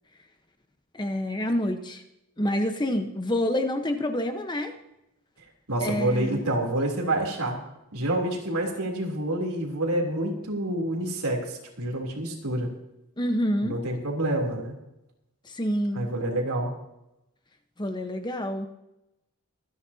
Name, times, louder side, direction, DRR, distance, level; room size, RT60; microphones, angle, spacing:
voice 1, 0.9-2.0 2.4-4.7 5.8-6.4 13.2-13.7 15.4-16.1 17.8-18.7, left 1 dB, 20° left, 6 dB, 1.1 m, -27 dB
voice 2, 5.7-7.6 7.9-12.7 13.6-14.8 15.9-16.7, right 1 dB, 85° right, 0 dB, 3.3 m, -28 dB
25.0 x 10.0 x 2.9 m, 0.89 s
head